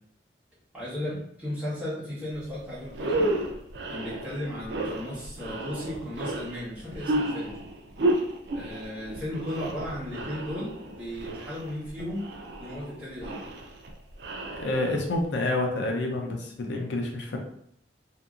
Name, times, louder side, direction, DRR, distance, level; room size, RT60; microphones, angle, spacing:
voice 1, 0.7-3.3 3.9-7.5 8.5-12.2 12.6-13.4, left 1 dB, 10° right, -10 dB, 1.3 m, -35 dB
sound 1, 2.4-2.5 2.9-15.2, right 1 dB, 70° right, 0.4 m, -32 dB
voice 2, 14.5-17.4, left 2 dB, 85° left, 2 dB, 0.5 m, -28 dB
2.7 x 2.7 x 2.4 m, 0.69 s
head